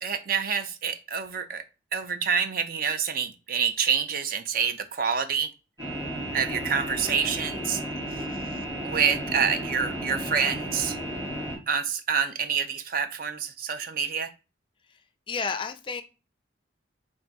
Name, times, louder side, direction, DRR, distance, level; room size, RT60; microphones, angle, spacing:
voice 1, 0.0-1.6 1.9-5.5 6.3-7.8 8.1-8.2 8.8-11.0 11.7-14.3, right 6 dB, 50° right, 0.5 m, -27 dB
sound 1, 5.8-11.6, right 1 dB, 15° right, 1.8 m, -33 dB
voice 2, 15.3-16.0, left 5 dB, 25° left, 0.3 m, -31 dB
3.4 x 2.5 x 4.0 m
head